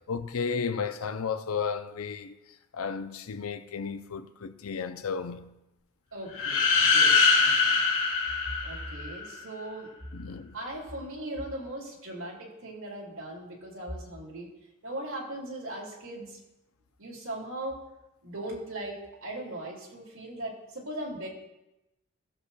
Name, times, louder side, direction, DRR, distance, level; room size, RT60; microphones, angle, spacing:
voice 1, 0.1-2.4 2.7-5.5 10.1-10.6, left 6 dB, 80° left, 0.6 m, -33 dB
voice 2, 6.1-7.8 8.6-9.9 10.5-14.5 14.8-16.4 17.0-17.8 18.2-21.3, right 1 dB, 70° right, 2.3 m, -39 dB
sound 1, 6.3-9.3, left 4 dB, 65° left, 1.5 m, -23 dB
17.5 x 6.6 x 2.3 m
head